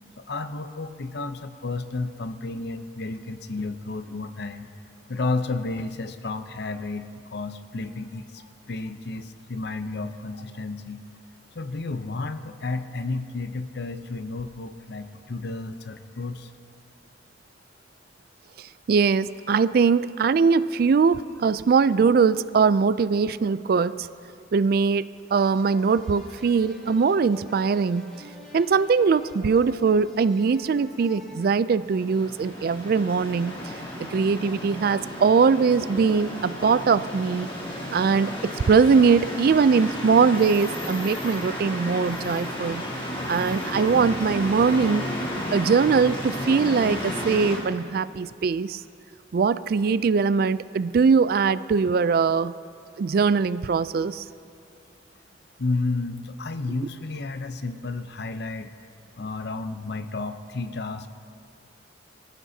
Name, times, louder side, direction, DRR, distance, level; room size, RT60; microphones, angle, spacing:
voice 1, 0.2-4.7 5.1-11.0 11.5-16.5 55.6-58.7 59.2-61.1, left 3 dB, 60° left, 10 dB, 0.7 m, -32 dB
voice 2, 18.9-24.1 24.5-25.0 25.3-28.1 28.5-33.6 34.0-37.5 37.9-42.8 43.3-45.1 45.5-48.8 49.3-52.5 53.0-54.2, right 5 dB, 55° right, 16 dB, 0.3 m, -21 dB
sound 1, 25.3-32.3, equal, 5° left, 4.6 m, -47 dB
sound 2, 31.8-47.6, equal, 30° left, 3.0 m, -33 dB
24.5 x 14.5 x 2.8 m, 2.3 s
head